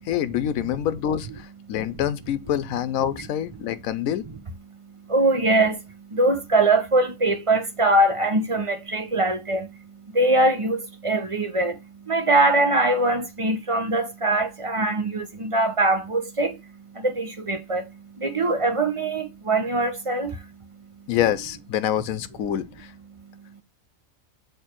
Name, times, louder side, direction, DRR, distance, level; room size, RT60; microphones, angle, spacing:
voice 1, 0.0-4.2 21.1-22.9, left 10 dB, 85° left, 1.0 m, -26 dB
voice 2, 4.7-20.7 23.1-23.6, right 2 dB, 30° right, 0.7 m, -23 dB
6.7 x 3.3 x 4.3 m
omnidirectional pair, 1.4 m